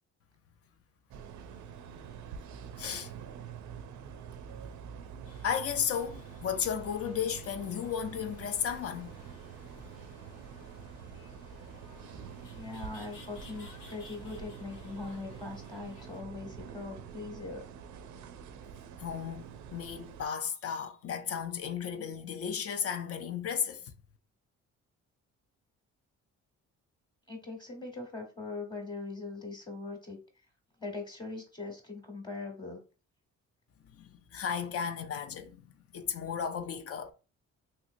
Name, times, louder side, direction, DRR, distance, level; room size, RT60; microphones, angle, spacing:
sound 1, 1.1-20.3, right 7 dB, 75° right, 0.5 m, -46 dB
voice 1, 2.8-3.1 5.4-9.1 19.0-23.9 34.0-35.7 35.9-37.1, left 7 dB, 50° left, 0.6 m, -34 dB
sound 2, 5.2-16.2, left 3 dB, 80° left, 0.9 m, -56 dB
voice 2, 12.5-17.6 27.3-30.2 30.8-32.8, left 3 dB, 15° left, 1.1 m, -41 dB
3.0 x 2.9 x 2.5 m
cardioid pair, 90°, 30 cm